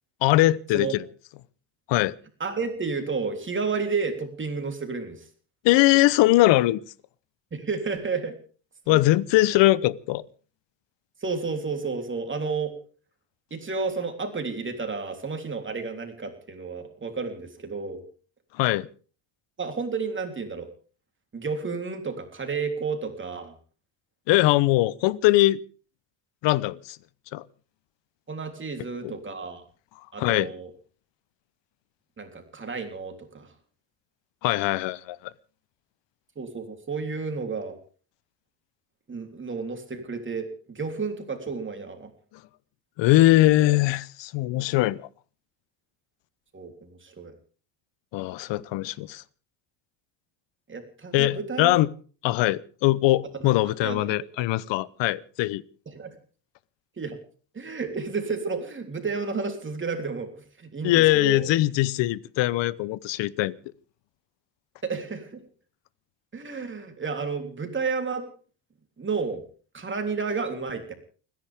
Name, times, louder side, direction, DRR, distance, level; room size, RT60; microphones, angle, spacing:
voice 1, 0.2-1.0 1.9-2.1 5.6-6.8 8.9-10.2 18.6-18.9 24.3-25.6 26.4-27.0 27.3-27.4 29.0-29.1 30.2-30.5 34.4-35.2 43.0-45.0 48.1-49.2 51.1-51.9 52.2-55.6 60.8-63.5, left 17 dB, 60° left, 0.9 m, -21 dB
voice 2, 2.4-5.3 7.5-8.4 8.9-9.0 11.2-12.8 13.5-18.0 19.6-20.7 21.3-23.5 28.3-29.6 30.1-30.7 32.2-33.5 36.3-37.8 39.1-42.1 46.5-47.3 50.7-51.8 53.4-54.1 55.8-56.1 57.0-57.2 57.5-61.5 64.8-65.4 66.3-68.3 69.0-69.4 69.7-70.9, right 4 dB, 25° right, 3.5 m, -31 dB
29.5 x 10.5 x 3.6 m
supercardioid pair, 95°, 49 cm